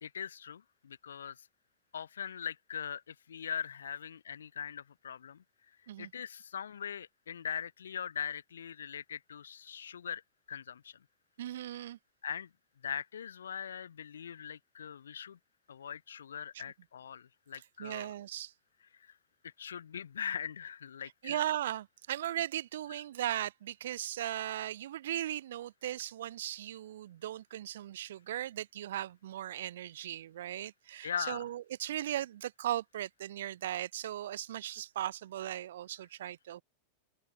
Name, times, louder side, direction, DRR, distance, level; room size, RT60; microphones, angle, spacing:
voice 1, 0.0-1.5 1.9-5.4 6.0-10.2 10.5-11.0 12.2-12.5 12.8-15.4 15.7-18.1 19.0-19.1 19.4-21.4 31.0-31.5, left 8 dB, 65° left, 1.3 m, -41 dB
voice 2, 11.4-12.0 17.8-18.5 21.2-36.6, right 12 dB, 60° right, 3.5 m, -37 dB
open air
figure-of-eight pair, 90°, 0 cm